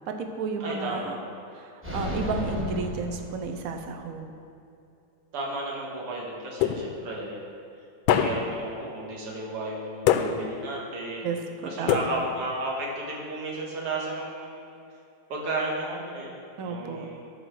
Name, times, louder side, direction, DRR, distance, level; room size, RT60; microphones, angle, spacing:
voice 1, 0.1-1.2 1.6-4.3 11.2-12.1 16.6-17.1, right 4 dB, 70° right, 5 dB, 0.8 m, -32 dB
voice 2, 0.6-1.3 5.3-7.4 8.1-14.7 15.3-16.3 16.6-17.2, right 2 dB, 85° right, -3 dB, 2.7 m, -33 dB
sound 1, 1.8-4.0, equal, 10° right, 0.8 m, -33 dB
sound 2, 6.6-7.2 8.1-8.7 10.1-10.7 11.9-12.5, left 9 dB, 75° left, 1.3 m, -25 dB
12.0 x 4.9 x 6.3 m, 2.6 s
omnidirectional pair, 2.4 m